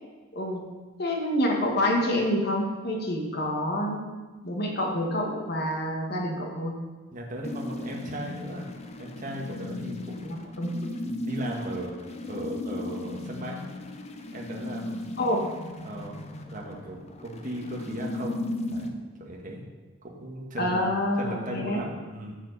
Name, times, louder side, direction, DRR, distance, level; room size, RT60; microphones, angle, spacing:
voice 1, 1.0-4.0 4.4-6.7 10.6-10.9 15.2-15.4 20.6-21.8, left 1 dB, 50° left, 0 dB, 1.7 m, -27 dB
voice 2, 7.1-8.7 9.0-10.4 11.0-13.6 14.3-15.1 15.8-16.2 16.5-18.4 18.6-18.9 19.2-19.6 20.0-20.8 21.2-22.4, right 1 dB, 40° right, -1 dB, 1.6 m, -37 dB
sound 1, 7.4-18.9, left 1 dB, 30° left, 0.7 m, -36 dB
15.0 x 5.0 x 4.1 m, 1.4 s
head